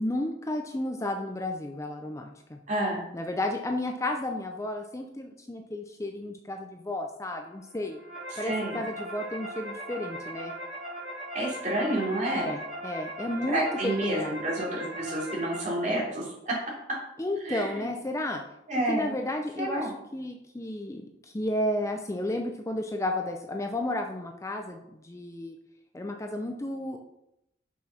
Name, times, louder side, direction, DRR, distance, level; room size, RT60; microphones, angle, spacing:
voice 1, 0.0-2.6 3.1-8.0 8.4-10.5 12.3-14.4 17.2-18.4 18.9-25.6 25.9-27.0, left 1 dB, 15° left, 4 dB, 0.5 m, -32 dB
voice 2, 2.7-3.0 8.3-8.8 11.3-12.5 13.5-16.6 17.4-17.8 18.7-19.1 19.6-19.9, right 1 dB, 40° right, -3 dB, 3.2 m, -29 dB
sound 1, 7.7-15.6, right 1 dB, 5° right, 3.2 m, -39 dB
6.1 x 6.1 x 5.8 m, 0.84 s
head